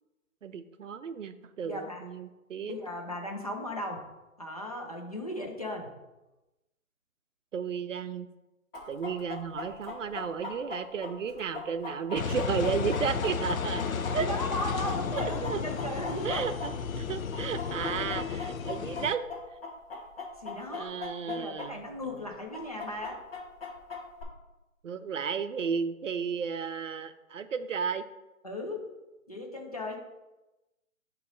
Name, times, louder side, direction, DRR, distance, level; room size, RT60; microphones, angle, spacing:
voice 1, 0.4-2.8 7.5-8.3 8.9-13.8 14.1-14.3 15.2-15.6 16.2-19.2 20.7-21.8 22.1-22.2 24.8-28.0, right 6 dB, 65° right, 10 dB, 0.5 m, -33 dB
voice 2, 1.6-2.1 2.7-4.0 4.4-5.9 14.1-16.4 20.4-20.9 21.3-23.2 28.4-28.8 29.3-30.0, left 1 dB, 30° left, 1 dB, 0.5 m, -36 dB
Chicken rooster, 8.7-17.0 17.3-21.7 21.9-22.0 22.5-24.2, left 5 dB, 45° left, 1.3 m, -39 dB
Engine, 12.1-19.1, left 6 dB, 75° left, 0.6 m, -33 dB
6.7 x 3.1 x 5.1 m, 1.0 s
hypercardioid pair, 175°, 42 cm